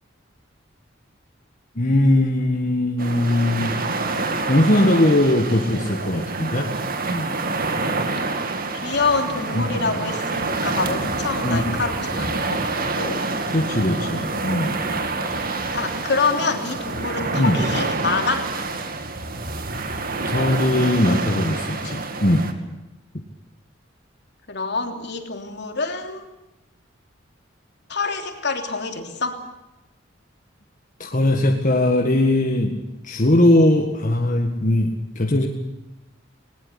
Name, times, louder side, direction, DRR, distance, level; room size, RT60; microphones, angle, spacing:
voice 1, 1.8-3.8 4.5-6.7 7.0-7.4 9.5-9.9 11.4-11.8 13.5-14.8 17.3-17.6 20.3-22.6 31.0-35.5, left 1 dB, 45° left, 2 dB, 1.9 m, -20 dB
sound 1, 3.0-22.5, right 3 dB, 50° right, 2.3 m, -27 dB
voice 2, 8.8-13.3 14.9-15.3 15.7-18.5 24.5-26.2 27.9-29.4, left 4 dB, 60° left, 5 dB, 3.2 m, -26 dB
20.5 x 20.0 x 8.3 m, 0.98 s
head